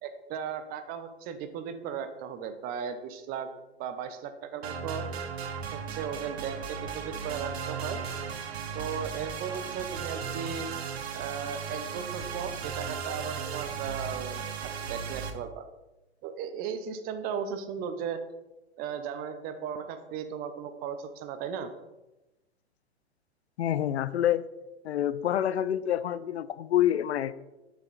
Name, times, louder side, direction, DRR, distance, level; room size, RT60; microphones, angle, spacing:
voice 1, 0.0-3.5 3.8-5.0 5.7-8.0 8.7-10.7 11.1-15.6 16.2-18.2 18.8-21.7, right 7 dB, 30° right, 9 dB, 0.7 m, -36 dB
sound 1, 4.6-15.3, right 6 dB, 70° right, 0.9 m, -36 dB
voice 2, 23.6-24.5 24.8-27.3, left 11 dB, 75° left, 17 dB, 0.5 m, -27 dB
6.5 x 6.0 x 4.0 m, 1.0 s
hypercardioid pair, 115°, 33 cm